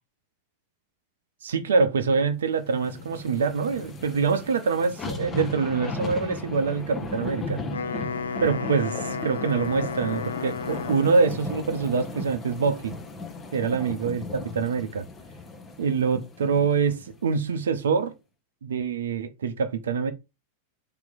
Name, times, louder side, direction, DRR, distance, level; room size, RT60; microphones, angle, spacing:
voice 1, 1.4-7.6 8.4-12.9 13.5-15.1 15.8-18.1 18.6-20.1, right 5 dB, 65° right, 0.6 m, -25 dB
sound 1, 2.7-17.1 17.6-17.7, left 2 dB, 20° left, 0.9 m, -37 dB
Wind instrument woodwind instrument, 7.6-11.4, left 5 dB, 70° left, 0.4 m, -33 dB
3.2 x 3.0 x 3.8 m
figure-of-eight pair, 90°, 0 cm